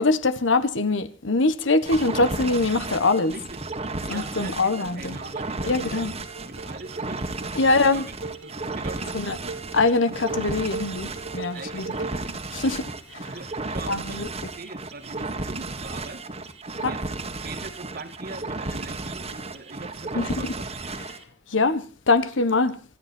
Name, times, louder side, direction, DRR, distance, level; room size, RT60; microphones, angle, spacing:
voice 1, 0.0-3.3 4.1-5.2 5.7-6.1 7.5-8.1 9.1-9.4 9.7-11.9 12.5-13.3 13.9-14.3 16.8-17.0 20.1-20.5 21.5-22.8, left 3 dB, 80° left, 1.3 m, -23 dB
sound 1, 1.9-21.2, right 3 dB, 35° right, 1.8 m, -34 dB
voice 2, 3.3-3.6 4.1-8.2 8.4-9.7 11.5-12.4 13.3-16.3 16.8-20.6, right 3 dB, 50° right, 2.1 m, -41 dB
sound 2, 5.4-12.3, right 3 dB, 85° right, 2.0 m, -40 dB
26.5 x 10.5 x 4.5 m
head